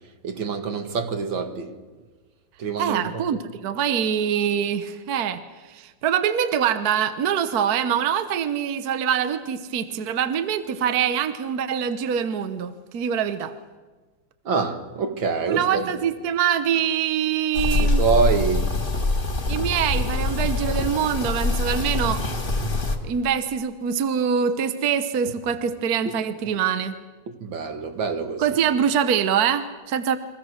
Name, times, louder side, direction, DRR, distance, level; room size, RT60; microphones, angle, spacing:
voice 1, 0.2-1.8 2.6-3.2 14.4-15.9 17.8-18.7 27.3-28.4, right 5 dB, 80° right, 2.6 m, -25 dB
voice 2, 2.8-5.4 5.7-13.5 15.5-18.0 19.5-22.2 23.0-27.0 28.4-30.2, right 8 dB, 55° right, 1.4 m, -24 dB
sound 1, 17.5-23.0, left 3 dB, 25° left, 2.3 m, -24 dB
30.0 x 23.0 x 6.4 m
omnidirectional pair, 2.1 m